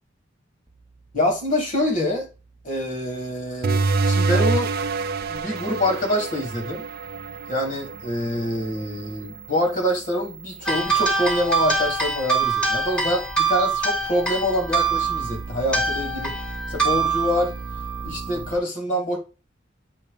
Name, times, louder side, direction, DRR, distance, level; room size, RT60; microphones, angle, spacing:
sound 1, 0.7-18.6, right 4 dB, 20° right, 0.8 m, -41 dB
voice 1, 1.1-2.3 2.6-3.8 4.1-4.7 5.3-6.8 7.5-16.3 16.7-17.5 18.0-19.2, left 1 dB, 45° left, 2.2 m, -25 dB
sound 2, 3.6-8.8, right 3 dB, 55° right, 0.5 m, -25 dB
sound 3, 10.7-18.6, right 4 dB, 5° left, 1.2 m, -25 dB
8.5 x 2.9 x 5.1 m
head